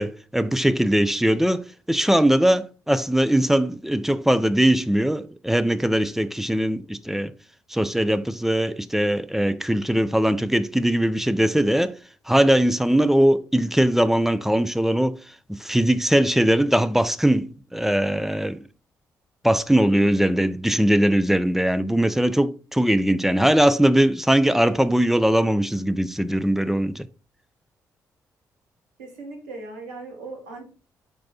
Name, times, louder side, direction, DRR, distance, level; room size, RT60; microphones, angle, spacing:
voice 1, 0.0-7.3 7.7-12.0 12.3-15.2 15.5-18.6 19.4-27.1, right 1 dB, 5° right, 0.4 m, -20 dB
voice 2, 29.0-30.7, right 3 dB, 80° right, 1.3 m, -38 dB
4.5 x 2.8 x 4.2 m
hypercardioid pair, 40°, 9 cm